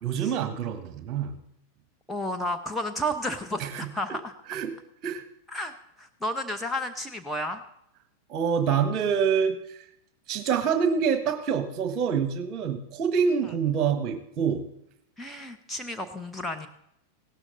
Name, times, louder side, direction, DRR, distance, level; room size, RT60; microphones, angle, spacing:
voice 1, 0.0-1.4 3.6-3.9 4.5-4.7 5.0-5.2 8.3-9.8 10.3-14.7, right 7 dB, 35° right, 9 dB, 1.4 m, -26 dB
voice 2, 2.1-4.3 5.5-7.6 15.2-16.7, equal, 5° left, 4 dB, 0.9 m, -32 dB
16.5 x 12.5 x 3.9 m, 0.77 s
figure-of-eight pair, 90°, 0 cm